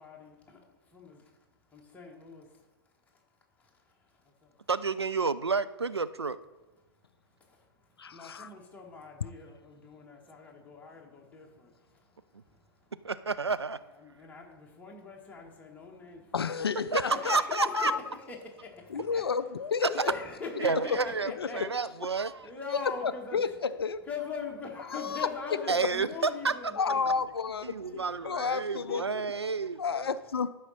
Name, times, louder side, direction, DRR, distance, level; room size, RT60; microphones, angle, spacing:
voice 1, 0.0-4.7 6.8-13.1 13.8-16.5 17.1-19.5 19.9-23.6 24.0-29.9, left 4 dB, 10° left, 1.5 m, -44 dB
voice 2, 4.7-6.4 13.0-13.8 16.9-17.0 17.3-17.9 20.6-21.3 21.6-22.4 25.7-26.5 27.6-30.1, right 4 dB, 85° right, 0.4 m, -30 dB
voice 3, 8.0-8.5 16.3-18.0 18.9-19.9 21.4-21.5 23.0-23.5 23.8-24.0 24.9-25.3 26.7-29.0 29.8-30.5, left 5 dB, 70° left, 0.4 m, -31 dB
12.0 x 4.9 x 4.2 m
figure-of-eight pair, 105°, 13 cm